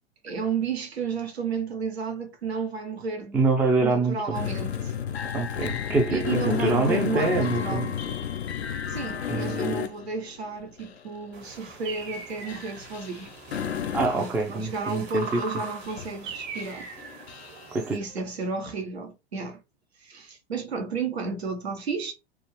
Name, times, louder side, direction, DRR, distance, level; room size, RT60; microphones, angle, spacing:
voice 1, 0.2-3.4 3.8-4.9 6.1-8.0 8.9-13.3 14.1-16.9 17.9-19.6 20.0-22.1, right 5 dB, 80° right, 0.9 m, -32 dB
voice 2, 3.3-4.4 5.3-7.9 9.3-9.8 13.9-15.4 17.7-18.0, right 3 dB, 5° right, 0.3 m, -25 dB
sound 1, 4.3-10.4 10.8-11.0 11.3-11.5 12.5-14.2 14.7-14.8 15.2-15.5 15.8-16.3 16.5-17.6, left 9 dB, 80° left, 0.5 m, -32 dB
sound 2, 11.3-18.0, right 5 dB, 55° right, 1.1 m, -40 dB
2.4 x 2.3 x 3.1 m
figure-of-eight pair, 90°, 31 cm